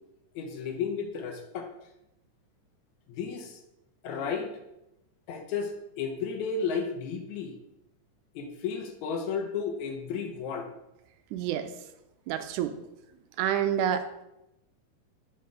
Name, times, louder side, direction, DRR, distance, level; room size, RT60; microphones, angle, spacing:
voice 1, 0.4-1.7 3.1-3.6 4.0-4.5 5.3-7.5 8.4-10.7, left 5 dB, 75° left, 4 dB, 1.9 m, -33 dB
voice 2, 11.3-11.7 12.3-12.7 13.4-14.3, right 9 dB, 80° right, 9 dB, 2.0 m, -28 dB
5.6 x 5.4 x 4.9 m, 0.89 s
omnidirectional pair, 3.6 m